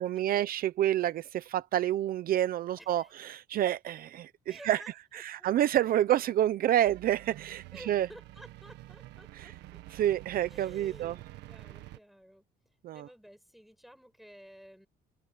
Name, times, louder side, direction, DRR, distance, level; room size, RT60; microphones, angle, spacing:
voice 1, 0.0-4.8 5.2-8.1 9.4-9.5 9.9-11.2 12.8-13.1, right 12 dB, 60° right, 0.8 m, -28 dB
voice 2, 2.8-3.3 4.5-5.5 7.7-9.8 10.5-12.5 12.9-14.9, equal, ahead, 6.0 m, -53 dB
sound 1, 6.8-12.0, right 16 dB, 90° right, 1.6 m, -48 dB
cardioid pair, 110°, 17 cm